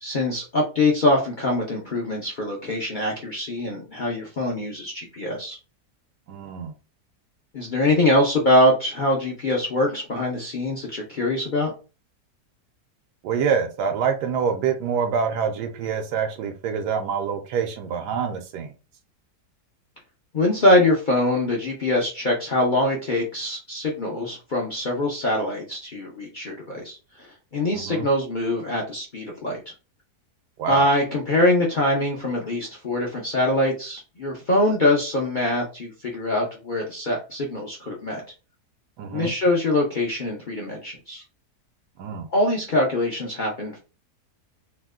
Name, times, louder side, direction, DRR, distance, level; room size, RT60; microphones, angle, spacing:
voice 1, 0.0-5.6 7.5-11.7 20.3-29.6 30.7-38.2 39.1-41.2 42.3-43.8, left 1 dB, 75° left, -1 dB, 0.4 m, -23 dB
voice 2, 6.3-6.7 13.2-18.7 27.7-28.1 30.6-30.9 39.0-39.3 42.0-42.3, right 6 dB, 80° right, 4 dB, 1.1 m, -26 dB
2.9 x 2.1 x 3.4 m, 0.32 s
omnidirectional pair, 1.8 m